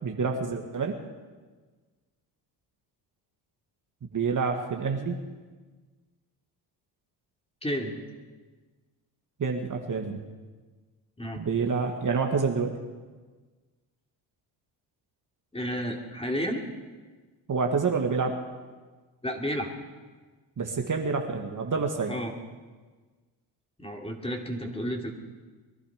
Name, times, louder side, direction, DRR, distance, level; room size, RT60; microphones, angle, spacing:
voice 1, 0.0-1.0 4.1-5.2 9.4-10.2 11.4-12.7 17.5-18.4 20.6-22.2, right 5 dB, 40° right, 2 dB, 1.9 m, -28 dB
voice 2, 7.6-7.9 11.2-11.4 15.5-16.6 19.2-19.7 22.1-22.3 23.8-25.1, equal, 10° left, 1 dB, 3.0 m, -31 dB
22.5 x 11.5 x 5.2 m, 1.4 s
supercardioid pair, 65°, 50 cm